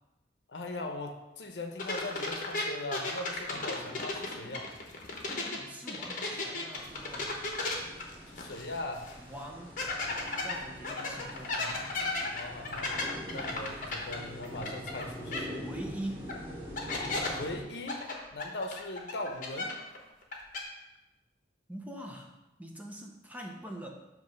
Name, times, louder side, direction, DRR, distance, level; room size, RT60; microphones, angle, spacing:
voice 1, 0.5-4.7 8.3-9.0 12.3-12.9 13.3-15.7 17.3-18.0 18.3-19.7, left 2 dB, 70° left, 4 dB, 0.8 m, -39 dB
sound 1, 1.8-5.6 5.9-8.8 9.1-9.2 9.8-15.0 15.3-15.4 16.3-16.4 16.8-17.3 17.9-20.0 20.2-20.6, left 3 dB, 45° left, 1.0 m, -34 dB
voice 2, 5.5-7.3 9.2-9.8 10.3-11.9 14.1-14.8 15.6-16.3 21.7-22.3 22.6-23.9, right 1 dB, 10° right, 0 dB, 0.7 m, -43 dB
sound 2, 6.8-17.6, equal, 30° right, 1.3 m, -45 dB
7.6 x 3.0 x 5.2 m, 1.0 s
head